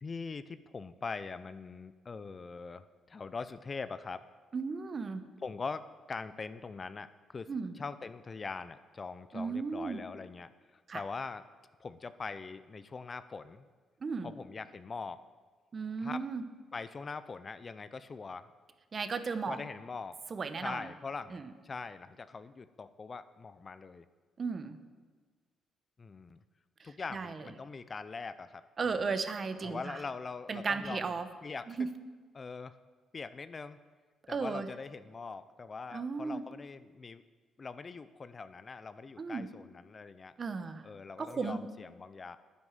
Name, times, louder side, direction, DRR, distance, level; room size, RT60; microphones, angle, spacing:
voice 1, 0.0-4.2 5.4-5.8 6.1-7.5 7.8-11.4 11.8-13.7 14.2-15.2 16.0-16.2 16.7-18.5 19.5-20.2 20.6-24.0 26.0-26.4 26.8-29.1 29.6-31.1 31.4-31.7 32.3-32.8 33.1-33.8 34.3-37.2 37.6-40.3 40.8-42.4, left 4 dB, 35° left, 14 dB, 0.6 m, -42 dB
voice 2, 4.5-5.3 7.5-7.7 9.3-10.0 10.9-11.0 14.0-14.3 15.7-16.4 18.9-19.6 20.3-20.9 21.3-21.5 24.4-24.8 27.1-27.5 28.8-30.0 30.5-31.3 31.7-31.9 34.3-34.7 35.9-36.4 39.2-39.5 40.4-40.8 41.2-41.6, right 4 dB, 40° right, 11 dB, 1.0 m, -35 dB
9.7 x 9.6 x 7.4 m, 1.5 s
cardioid pair, 90°, 0 cm